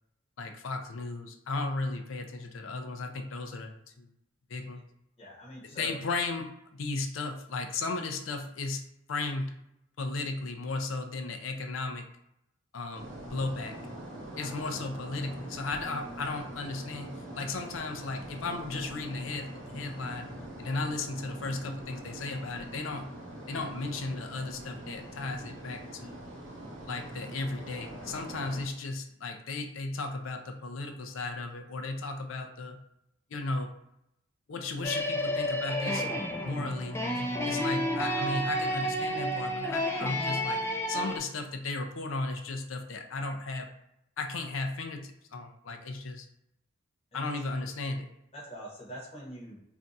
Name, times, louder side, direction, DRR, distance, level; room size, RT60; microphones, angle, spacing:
voice 1, 0.4-4.1 4.5-4.8 5.7-8.8 9.1-9.5 10.0-12.0 12.7-13.8 14.4-20.3 20.6-23.1 23.5-26.2 26.9-32.8 33.3-33.7 34.5-43.7 44.2-46.3 47.1-48.1, left 3 dB, 80° left, 5 dB, 0.5 m, -35 dB
voice 2, 5.2-6.0 14.4-14.8 47.1-47.3 48.3-49.6, right 1 dB, 30° left, -4 dB, 0.9 m, -44 dB
sound 1, 12.9-28.6, right 1 dB, 70° right, 0.9 m, -44 dB
sound 2, 34.8-41.2, equal, 15° left, 0.4 m, -31 dB
2.5 x 2.3 x 3.9 m, 0.82 s
head